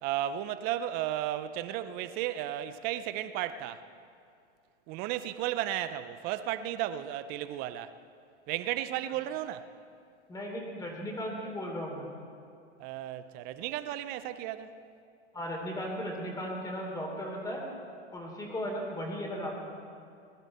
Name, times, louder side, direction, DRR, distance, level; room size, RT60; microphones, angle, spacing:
voice 1, 0.0-3.8 4.9-7.9 8.5-9.7 12.8-14.7, right 12 dB, 25° right, 12 dB, 0.5 m, -34 dB
voice 2, 10.3-12.1 15.3-17.6 18.1-19.5, equal, 10° left, 0 dB, 3.1 m, -36 dB
21.0 x 12.0 x 4.2 m, 2.4 s
hypercardioid pair, 125°, 35 cm